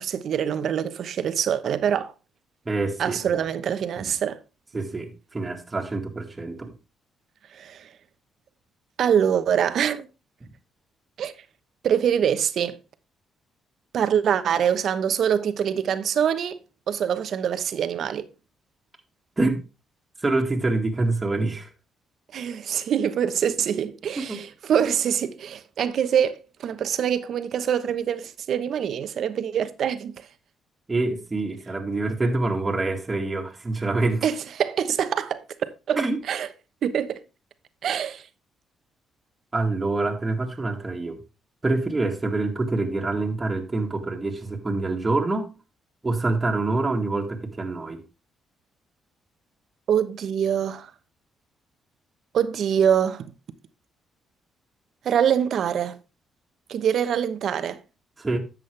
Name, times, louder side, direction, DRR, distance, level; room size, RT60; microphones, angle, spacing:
voice 1, 0.0-2.1 3.0-4.4 7.5-7.9 9.0-10.1 11.2-11.3 11.8-12.8 13.9-16.6 16.9-18.3 22.3-30.1 34.2-35.4 35.9-36.5 36.8-37.2 37.8-38.2 49.9-50.9 52.3-53.2 55.0-56.0 56.7-57.8, right 8 dB, 65° right, 0.9 m, -24 dB
voice 2, 2.7-3.4 4.0-4.1 4.7-6.7 10.4-10.5 19.4-19.6 20.2-21.7 24.3-24.4 30.9-34.3 36.0-36.2 39.5-41.2 41.6-45.5 46.0-48.0 58.2-58.4, right 2 dB, 20° right, 1.9 m, -26 dB
11.0 x 7.5 x 3.3 m
cardioid pair, 90°, 0 cm